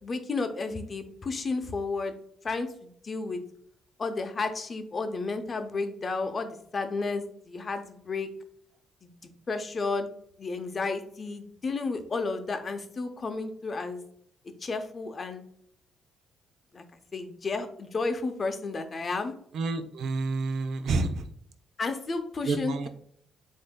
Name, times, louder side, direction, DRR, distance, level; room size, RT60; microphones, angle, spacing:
voice 1, 0.0-2.1 2.4-3.4 4.0-8.3 9.0-9.1 9.5-10.1 10.4-14.0 14.6-15.4 16.7-16.8 17.1-19.3 21.8-22.9, left 3 dB, 40° left, 7 dB, 0.6 m, -32 dB
voice 2, 19.5-21.3 22.5-22.9, right 3 dB, 70° right, 7 dB, 0.5 m, -29 dB
7.6 x 2.6 x 2.2 m, 0.65 s
cardioid pair, 90°, 0 cm